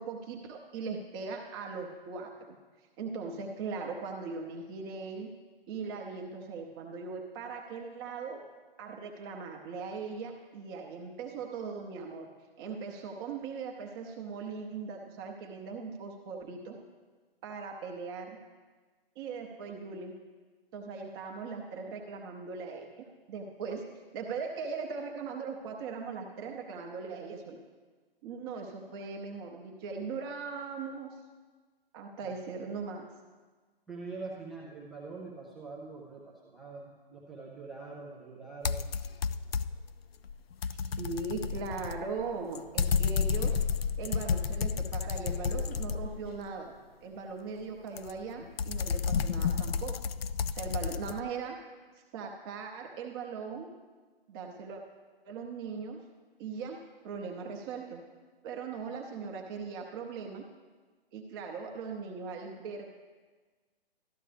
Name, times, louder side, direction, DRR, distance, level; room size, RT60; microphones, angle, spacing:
voice 1, 0.0-5.3 5.7-8.4 8.8-12.3 12.6-16.8 17.4-18.4 19.2-20.2 20.7-22.9 23.3-23.8 24.1-27.6 28.2-31.2 31.9-33.1 40.7-43.6 44.0-46.7 47.0-50.0 50.5-51.6 52.1-53.7 54.3-54.8 55.2-56.0 56.4-56.8 57.0-58.0 58.4-60.4 61.1-62.9, right 5 dB, 25° right, 1 dB, 0.8 m, -39 dB
voice 2, 33.9-38.9, right 3 dB, ahead, -5 dB, 0.3 m, -44 dB
sound 1, 38.6-39.9 40.3-46.5 48.0-51.2, left 6 dB, 75° left, 0.5 m, -31 dB
13.5 x 10.5 x 3.4 m, 1.4 s
hypercardioid pair, 135°, 30 cm